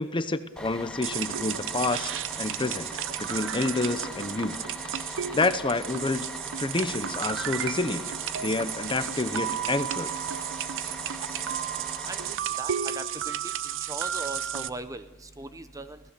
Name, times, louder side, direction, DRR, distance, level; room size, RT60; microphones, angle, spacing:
voice 1, 0.0-2.9 3.2-6.3 6.6-8.1 8.4-10.1, left 3 dB, 25° left, 12 dB, 0.8 m, -29 dB
Bus, 0.6-12.3, left 1 dB, 5° left, 1.8 m, -41 dB
sound 1, 1.0-14.7, right 10 dB, 60° right, 0.7 m, -33 dB
voice 2, 12.0-13.5 13.9-16.0, right 2 dB, 15° right, 11 dB, 0.8 m, -39 dB
28.5 x 17.0 x 6.8 m, 1.1 s
head